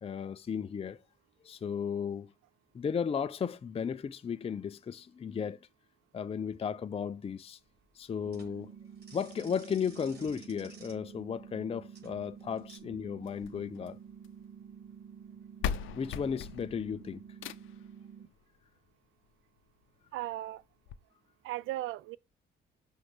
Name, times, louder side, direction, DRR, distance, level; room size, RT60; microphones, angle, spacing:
voice 1, 0.0-1.0 1.4-2.3 2.7-5.6 6.1-7.6 8.0-8.7 9.1-14.0 16.0-17.2, left 7 dB, 30° left, 0.5 m, -35 dB
sound 1, 7.6-12.8, right 4 dB, 55° right, 3.5 m, -57 dB
sound 2, 8.3-18.3, right 7 dB, 40° right, 1.5 m, -50 dB
sound 3, 13.2-14.4 15.3-15.4 15.6-17.9 19.2-19.3 19.8-19.9 20.2-20.3 20.9-21.0, left 9 dB, 80° left, 0.6 m, -39 dB
voice 2, 20.1-20.6 21.4-22.2, right 15 dB, 85° right, 0.4 m, -36 dB
6.3 x 3.3 x 5.8 m
cardioid pair, 90°, 20 cm